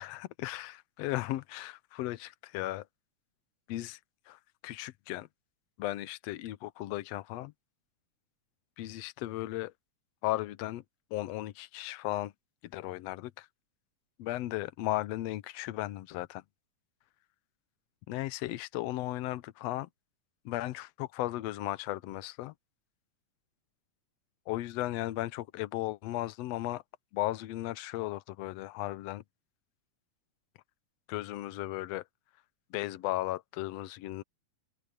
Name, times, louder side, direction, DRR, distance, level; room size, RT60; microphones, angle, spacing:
voice 1, 0.0-2.9 3.7-4.0 4.3-5.3 5.8-7.5 8.8-9.7 10.2-10.8 11.1-12.3 12.6-13.5 14.2-16.4 18.1-19.9 20.5-22.5 24.5-26.8 27.1-29.2 31.1-32.0 32.7-34.2, left 16 dB, 70° left, 1.7 m, -36 dB
omnidirectional pair, 3.4 m